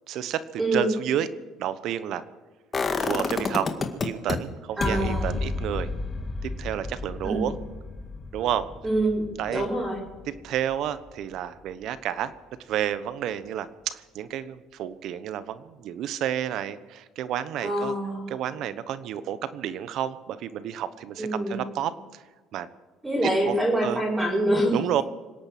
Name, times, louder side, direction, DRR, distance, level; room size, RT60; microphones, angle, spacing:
voice 1, 0.1-1.3 1.6-2.2 3.0-3.7 4.0-5.9 6.4-7.6 8.3-8.7 9.4-9.7 10.4-12.3 12.7-18.0 18.3-22.2 22.5-22.7 23.2-23.6 23.8-24.0 24.7-25.0, right 10 dB, 65° right, 14 dB, 1.1 m, -30 dB
voice 2, 0.6-0.9 4.8-5.3 7.2-7.5 8.8-10.0 17.6-18.2 21.2-21.6 23.0-24.8, right 1 dB, 15° right, -7 dB, 5.3 m, -25 dB
sound 1, 2.7-4.4 4.8-10.6 11.0-11.1, left 4 dB, 30° left, 2.0 m, -31 dB
26.0 x 8.8 x 6.1 m, 1.3 s
supercardioid pair, 100°, 0 cm